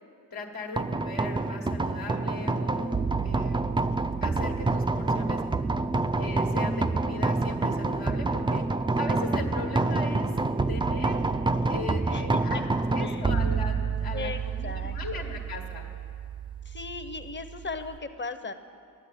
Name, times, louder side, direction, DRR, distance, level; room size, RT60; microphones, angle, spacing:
voice 1, 0.3-3.7 4.2-5.4 6.1-8.6 9.0-10.3 10.7-11.2 11.7-12.6 12.9-15.9, left 3 dB, 85° left, -1 dB, 1.3 m, -38 dB
sound 1, 0.8-18.0, right 3 dB, 15° right, 0.3 m, -28 dB
voice 2, 14.1-15.4 16.6-18.5, left 4 dB, 30° left, 10 dB, 0.7 m, -37 dB
11.0 x 8.3 x 9.0 m, 2.4 s
wide cardioid pair, 85°, 35 cm